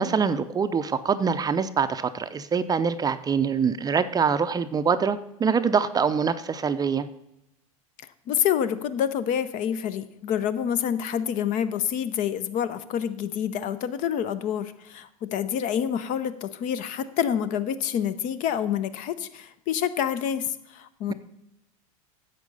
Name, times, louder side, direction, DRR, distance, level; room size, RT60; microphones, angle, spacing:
voice 1, 0.0-7.1, right 6 dB, 20° right, 11 dB, 0.5 m, -24 dB
voice 2, 8.3-21.1, left 9 dB, 45° left, 14 dB, 0.7 m, -27 dB
10.5 x 7.4 x 5.4 m, 0.84 s
hypercardioid pair, 85°, 18 cm